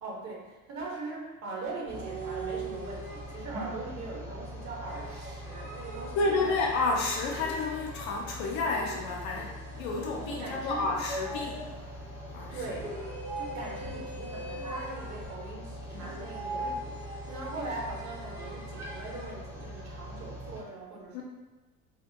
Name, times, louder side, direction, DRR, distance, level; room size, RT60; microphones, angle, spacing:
voice 1, 0.0-6.5 10.3-11.0 12.5-12.9 13.4-21.2, right 3 dB, 40° right, -3 dB, 0.9 m, -41 dB
sound 1, 1.9-20.6, equal, 5° right, 0.7 m, -41 dB
sound 2, 1.9-3.7 4.9-7.9 8.4-10.7 11.3-12.0 12.7-15.5 15.9-19.4, right 3 dB, 80° right, 1.1 m, -44 dB
voice 2, 6.1-11.8 12.3-12.7 21.1-21.2, left 3 dB, 45° left, -1 dB, 0.5 m, -30 dB
2.7 x 2.4 x 2.7 m, 1.2 s
figure-of-eight pair, 65°, 42 cm